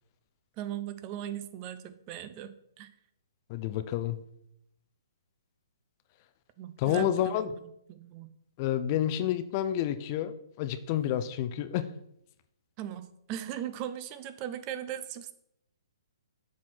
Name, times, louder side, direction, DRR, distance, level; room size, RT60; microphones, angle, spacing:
voice 1, 0.6-2.9 6.6-8.3 12.8-15.3, right 11 dB, 30° right, 12 dB, 0.6 m, -39 dB
voice 2, 3.5-4.2 6.8-7.5 8.6-11.9, left 11 dB, 35° left, 11 dB, 0.5 m, -29 dB
7.2 x 4.3 x 6.2 m, 0.77 s
figure-of-eight pair, 130°, 2 cm